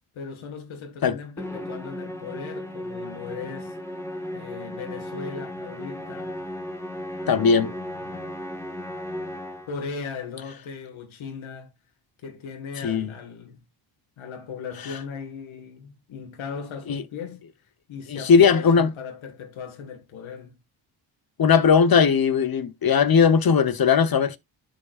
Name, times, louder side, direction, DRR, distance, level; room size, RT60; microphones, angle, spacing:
voice 1, 0.1-3.8 4.3-6.4 7.3-8.4 9.7-11.7 12.2-13.6 14.2-17.4 17.9-20.6, left 6 dB, 70° left, 2.0 m, -38 dB
Musical instrument, 1.4-9.9, left 1 dB, 5° left, 1.8 m, -35 dB
voice 2, 7.3-7.7 12.8-13.1 16.9-17.0 18.1-18.9 21.4-24.4, left 6 dB, 45° left, 1.1 m, -18 dB
12.0 x 5.0 x 2.5 m
cardioid pair, 80°, 48 cm